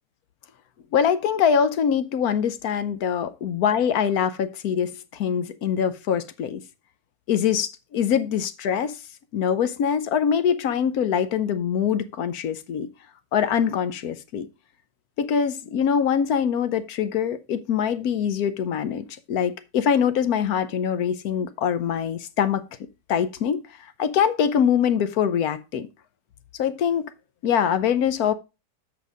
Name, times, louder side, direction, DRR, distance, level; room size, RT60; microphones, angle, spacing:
voice 1, 0.9-6.6 7.3-9.0 9.3-12.9 13.3-14.5 15.2-22.6 23.1-23.6 24.0-25.9 26.6-27.1 27.4-28.3, left 8 dB, 70° left, 1.2 m, -23 dB
7.8 x 5.2 x 5.1 m
omnidirectional pair, 1.7 m